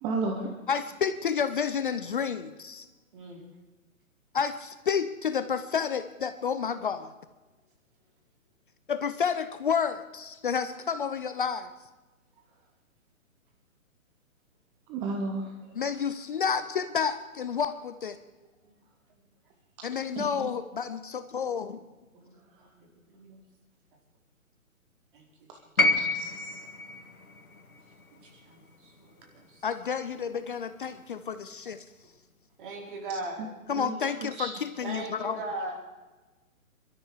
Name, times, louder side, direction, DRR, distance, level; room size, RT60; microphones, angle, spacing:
voice 1, 0.0-0.5 14.9-15.5 20.2-20.3 26.1-26.6 33.8-34.0 34.4-34.5, right 3 dB, 10° right, 3 dB, 0.8 m, -32 dB
voice 2, 0.7-2.9 4.3-7.1 8.9-11.7 15.7-18.2 19.8-21.8 29.6-31.8 33.7-35.4, left 6 dB, 40° left, 12 dB, 0.7 m, -30 dB
voice 3, 22.1-23.4 25.1-25.3 28.1-28.2 28.5-29.6 32.6-33.4 34.8-35.7, right 2 dB, 40° right, 0 dB, 4.4 m, -39 dB
sound 1, 25.8-30.0 31.1-31.2, left 2 dB, 85° left, 1.8 m, -30 dB
22.0 x 13.0 x 4.8 m, 1.2 s
figure-of-eight pair, 130°, 41 cm